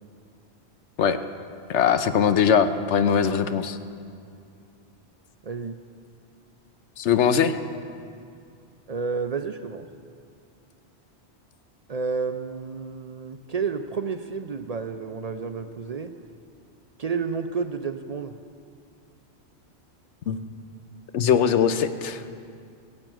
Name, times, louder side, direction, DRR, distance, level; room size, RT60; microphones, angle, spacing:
voice 1, 1.7-3.8 7.0-7.6 20.3-20.4 21.1-22.2, left 7 dB, 90° left, 10 dB, 1.0 m, -21 dB
voice 2, 5.4-5.8 8.9-9.9 11.9-16.2 17.0-18.4, right 5 dB, 50° right, 8 dB, 0.5 m, -30 dB
16.5 x 7.7 x 9.0 m, 2.4 s
omnidirectional pair, 1.1 m